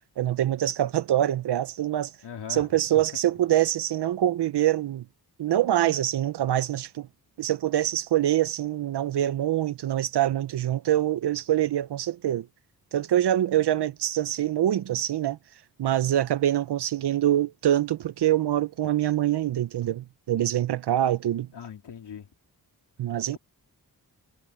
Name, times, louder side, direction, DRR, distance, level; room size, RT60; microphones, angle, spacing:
voice 1, 0.2-2.1 2.5-5.0 5.4-7.1 7.4-12.5 12.9-15.4 15.8-21.5 23.0-23.4, right 12 dB, 75° right, 0.6 m, -25 dB
voice 2, 2.2-3.0 21.5-22.3, left 7 dB, 85° left, 3.0 m, -40 dB
wide cardioid pair, 175°, 40 cm